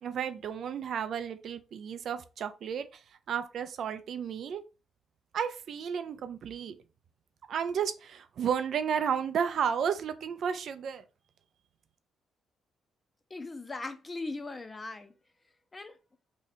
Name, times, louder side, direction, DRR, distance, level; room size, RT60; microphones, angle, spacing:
voice 1, 0.0-3.0 3.3-4.6 5.3-6.7 7.5-11.0, right 7 dB, 65° right, 0.4 m, -32 dB
voice 2, 13.3-15.1 15.7-16.0, left 3 dB, 25° left, 0.6 m, -39 dB
2.8 x 2.4 x 4.1 m
cardioid pair, 90°, 0 cm